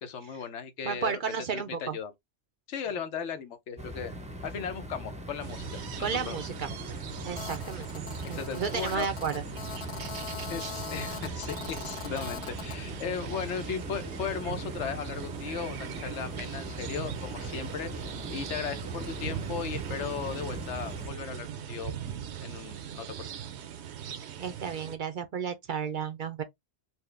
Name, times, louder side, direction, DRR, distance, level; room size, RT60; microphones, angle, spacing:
voice 1, 0.0-2.1 2.7-4.1 4.4-6.4 8.2-9.1 10.5-17.9 18.3-21.9 22.4-23.4, left 7 dB, 90° left, 1.1 m, -37 dB
voice 2, 0.9-2.0 6.0-6.7 7.2-9.3 24.4-26.4, right 6 dB, 55° right, 0.6 m, -33 dB
sound 1, 3.8-21.1, equal, 10° right, 0.6 m, -41 dB
sound 2, 5.4-25.0, right 9 dB, 75° right, 0.9 m, -40 dB
Telephone, 7.4-12.8, left 8 dB, 55° left, 0.3 m, -42 dB
4.3 x 2.1 x 3.3 m
omnidirectional pair, 1.2 m